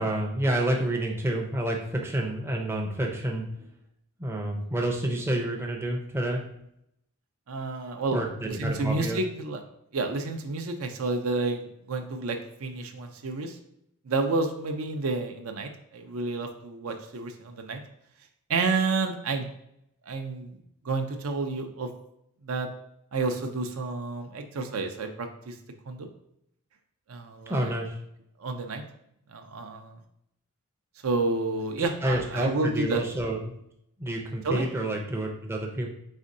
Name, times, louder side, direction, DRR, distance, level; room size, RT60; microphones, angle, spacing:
voice 1, 0.0-3.7 4.2-6.4 8.1-9.2 27.5-27.9 31.8-33.6 34.0-35.9, right 1 dB, 10° right, 0 dB, 0.5 m, -29 dB
voice 2, 7.5-9.6 9.9-13.6 14.0-17.8 18.5-19.5 20.1-20.6 20.8-21.9 22.4-22.7 23.1-25.6 25.9-26.1 27.1-27.7 28.4-28.8 29.3-30.0 31.0-33.0 34.4-34.6, right 3 dB, 65° right, 5 dB, 0.5 m, -30 dB
4.2 x 3.5 x 2.6 m, 0.77 s
head